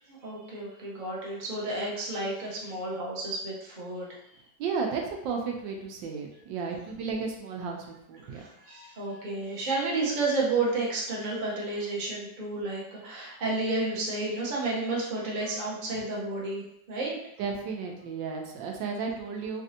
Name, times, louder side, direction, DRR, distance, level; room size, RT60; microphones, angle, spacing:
voice 1, 0.2-4.1 6.7-6.9 8.3-17.2, right 2 dB, 40° right, -5 dB, 0.7 m, -31 dB
voice 2, 4.6-7.8 8.1-8.4 17.4-19.6, right 5 dB, 85° right, 1 dB, 1.3 m, -33 dB
4.1 x 2.5 x 2.7 m, 0.80 s
omnidirectional pair, 2.0 m